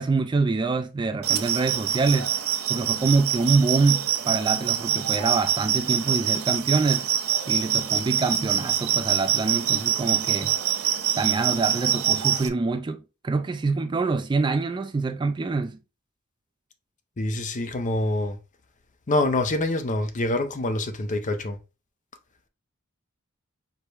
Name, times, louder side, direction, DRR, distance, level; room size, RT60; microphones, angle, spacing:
voice 1, 0.0-2.3 2.7-7.1 7.5-10.5 11.2-13.0 13.2-15.8, right 3 dB, 20° right, 0.3 m, -25 dB
sound 1, 1.2-12.5, right 9 dB, 80° right, 0.6 m, -25 dB
voice 2, 17.2-18.4 19.1-21.6, left 2 dB, 35° left, 0.6 m, -25 dB
4.8 x 2.1 x 4.7 m
head